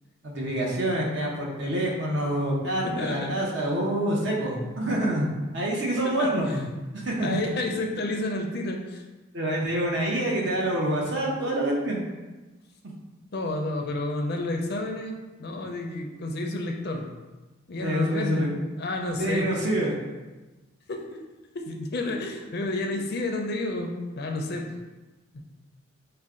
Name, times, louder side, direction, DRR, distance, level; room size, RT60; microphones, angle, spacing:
voice 1, 0.2-5.3 5.5-6.6 6.9-7.4 9.3-12.0 17.8-18.5 19.0-19.9, right 1 dB, 60° right, -3 dB, 0.9 m, -26 dB
voice 2, 2.8-3.4 4.3-4.4 6.2-6.6 7.0-9.0 11.4-11.6 13.3-17.1 17.7-19.5 20.9-21.2 21.5-24.7 25.3-25.4, left 2 dB, 50° left, 2 dB, 0.5 m, -30 dB
5.3 x 2.2 x 3.6 m, 1.2 s
head